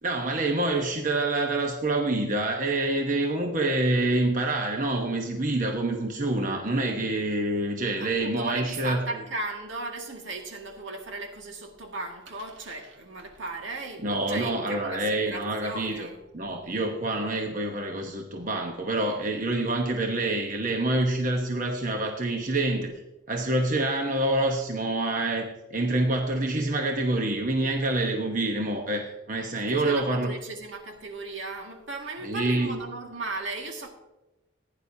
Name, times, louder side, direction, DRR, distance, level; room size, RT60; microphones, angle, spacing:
voice 1, 0.0-9.0 14.0-16.1 16.3-22.9 23.3-30.3 32.2-32.8, right 2 dB, 40° right, 1.0 m, -27 dB
voice 2, 8.0-16.2 29.5-33.9, right 2 dB, 75° right, 2.1 m, -36 dB
16.0 x 9.9 x 2.8 m
head